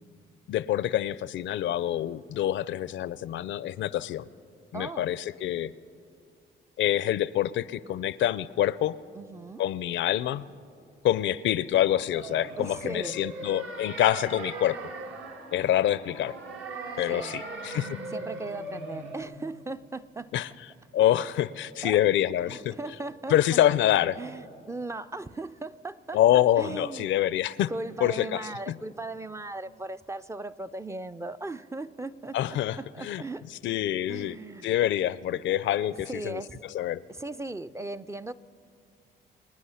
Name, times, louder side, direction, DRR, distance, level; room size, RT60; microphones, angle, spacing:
voice 1, 0.5-4.3 4.7-5.7 6.8-8.9 9.6-10.4 11.0-14.8 15.5-16.3 17.0-17.9 20.3-20.5 20.9-22.7 23.3-24.2 26.1-27.7 28.0-28.7 32.3-33.2 33.6-34.4 34.6-36.4 36.7-37.0, left 12 dB, 70° left, 18 dB, 0.5 m, -26 dB
voice 2, 4.7-5.1 9.1-9.6 12.6-13.2 17.1-17.5 18.1-20.3 21.8-22.0 22.5-23.6 24.2-26.2 26.6-27.1 27.7-33.8 34.1-34.7 36.1-36.6 37.1-38.3, right 2 dB, 15° right, 12 dB, 0.4 m, -38 dB
sound 1, 12.1-19.2, right 2 dB, 75° right, 1.6 m, -39 dB
26.0 x 9.7 x 5.7 m, 2.4 s
cardioid pair, 90°, 20 cm